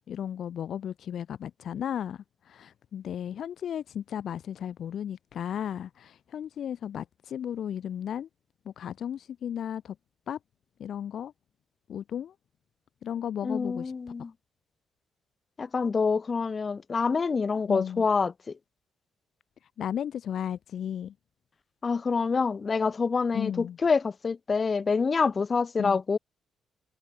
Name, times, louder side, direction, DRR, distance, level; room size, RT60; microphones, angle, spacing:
voice 1, 0.0-8.3 8.7-9.9 10.3-10.4 10.8-11.3 11.9-12.3 13.0-13.9 17.7-18.0 19.8-21.1 23.3-23.8 25.8-26.0, left 9 dB, 65° left, 2.4 m, -35 dB
voice 2, 13.4-14.3 15.6-18.3 21.8-26.2, left 5 dB, 35° left, 4.3 m, -26 dB
cardioid pair, 90°, 0 cm